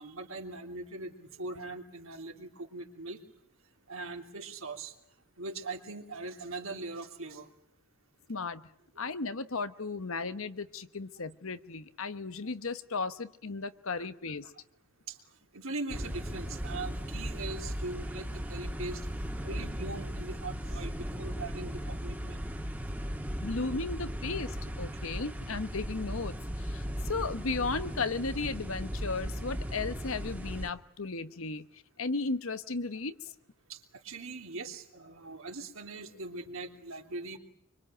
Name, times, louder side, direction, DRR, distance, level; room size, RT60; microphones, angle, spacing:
voice 1, 0.0-3.2 3.9-4.9 5.4-7.5 8.9-9.1 14.0-14.1 15.1-15.2 15.5-19.1 19.5-22.4 33.7-37.4, right 3 dB, 65° right, 3 dB, 3.1 m, -41 dB
voice 2, 8.3-8.6 9.0-14.5 23.4-31.7 32.0-33.1, left 3 dB, 65° left, 12 dB, 1.1 m, -35 dB
sound 1, 15.9-30.7, equal, 10° right, 2.0 m, -37 dB
25.5 x 24.5 x 9.1 m, 0.73 s
head